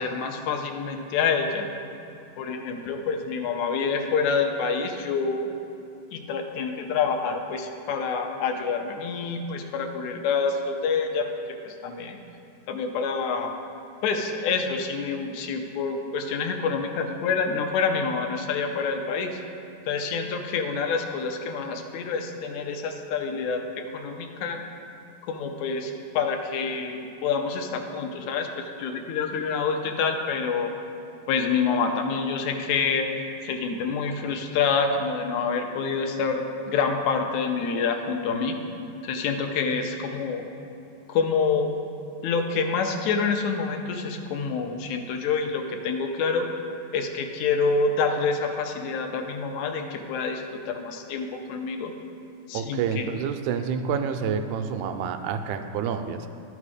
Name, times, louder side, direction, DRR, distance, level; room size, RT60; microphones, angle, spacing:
voice 1, 0.0-1.7 2.4-5.5 6.1-11.3 11.6-12.2 12.7-13.5 14.0-19.4 19.9-24.6 25.2-30.7 31.3-33.1 33.4-38.6 39.0-40.4 41.1-41.7 42.2-46.5 46.9-51.9 52.5-53.1, left 5 dB, 85° left, 4 dB, 2.0 m, -27 dB
voice 2, 52.5-56.3, right 6 dB, 85° right, 7 dB, 2.0 m, -28 dB
12.0 x 5.1 x 4.9 m, 2.7 s
omnidirectional pair, 3.4 m